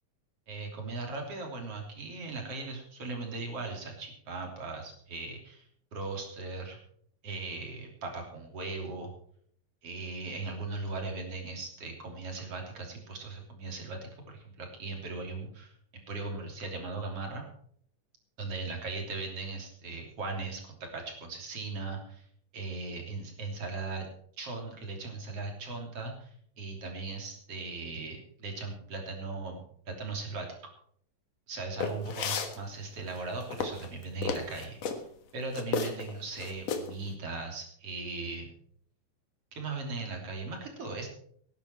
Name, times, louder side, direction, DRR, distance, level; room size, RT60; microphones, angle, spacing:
voice 1, 0.5-5.7 5.9-6.8 7.2-9.1 9.8-17.4 18.4-20.6 20.9-22.3 22.5-24.1 24.4-26.3 26.6-30.6 31.5-35.0 35.3-38.5 39.5-41.1, right 3 dB, 50° right, 3 dB, 4.1 m, -38 dB
sound 1, 31.8-32.6 33.2-35.0 35.6-36.1 36.4-36.9, left 5 dB, 60° left, 2.6 m, -32 dB
18.5 x 10.5 x 4.6 m, 0.63 s
omnidirectional pair, 3.4 m